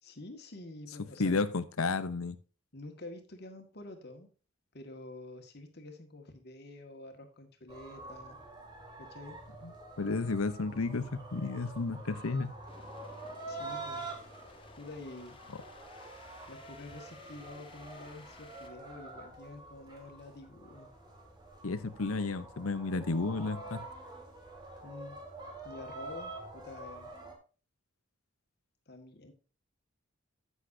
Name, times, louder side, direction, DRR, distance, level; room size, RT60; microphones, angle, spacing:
voice 1, 0.0-1.4 2.7-4.3 4.7-8.4 9.0-9.4 13.5-14.1 14.8-15.4 16.5-20.9 24.8-25.2 25.6-27.1 28.9-29.3, left 2 dB, 50° left, 5 dB, 1.8 m, -48 dB
voice 2, 1.2-2.4 9.6-9.7 10.0-12.5 21.6-23.8, left 3 dB, 90° left, 13 dB, 0.8 m, -32 dB
sound 1, 7.7-27.3, right 2 dB, 20° right, 2.2 m, -47 dB
sound 2, 12.7-18.7, left 3 dB, 25° left, 1.3 m, -56 dB
10.0 x 8.2 x 2.7 m, 0.35 s
head